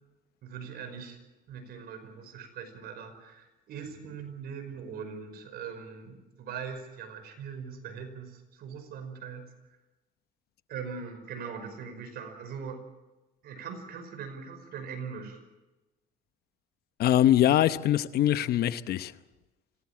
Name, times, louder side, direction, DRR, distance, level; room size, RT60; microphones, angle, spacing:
voice 1, 0.4-1.2 1.5-9.5 10.7-12.8 13.4-15.4, right 6 dB, 70° right, 5.3 m, -41 dB
voice 2, 17.0-19.1, left 12 dB, 65° left, 0.9 m, -23 dB
25.5 x 18.0 x 7.4 m
cardioid pair, 110°, 17 cm